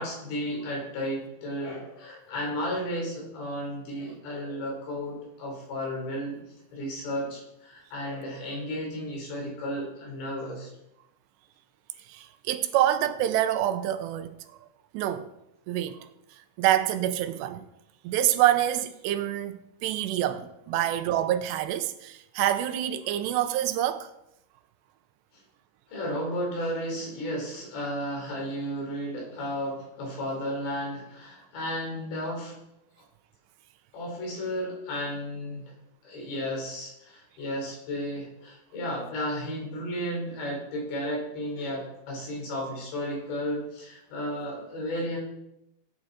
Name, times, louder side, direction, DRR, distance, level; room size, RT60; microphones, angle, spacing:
voice 1, 0.0-6.4 6.7-10.7 20.7-21.0 25.9-32.6 33.0-33.1 33.9-35.6 36.0-45.2, equal, 85° left, 6.3 m, -33 dB
voice 2, 12.1-14.3 14.9-15.3 15.7-16.0 16.6-17.6 18.0-24.1, right 12 dB, 85° right, 2.8 m, -26 dB
16.5 x 9.1 x 4.2 m
omnidirectional pair, 5.0 m